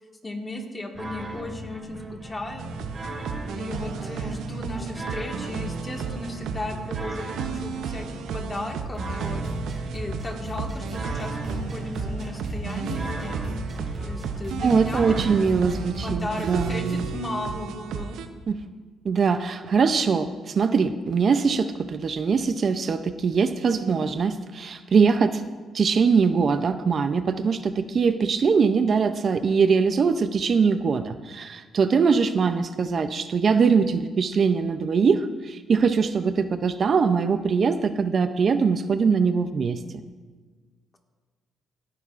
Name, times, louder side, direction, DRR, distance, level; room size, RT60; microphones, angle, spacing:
voice 1, 0.2-3.0 3.5-15.1 16.0-18.2, left 2 dB, 25° left, 2 dB, 1.8 m, -36 dB
sound 1, 0.9-16.9, right 1 dB, 35° right, 3.5 m, -36 dB
sound 2, 2.6-18.3, right 6 dB, 80° right, 0.7 m, -33 dB
voice 2, 14.6-17.1 18.5-18.6 19.0-25.4 25.7-39.8, right 5 dB, 50° right, 10 dB, 0.5 m, -22 dB
18.0 x 9.8 x 2.5 m, 1.5 s
cardioid pair, 90°, 0 cm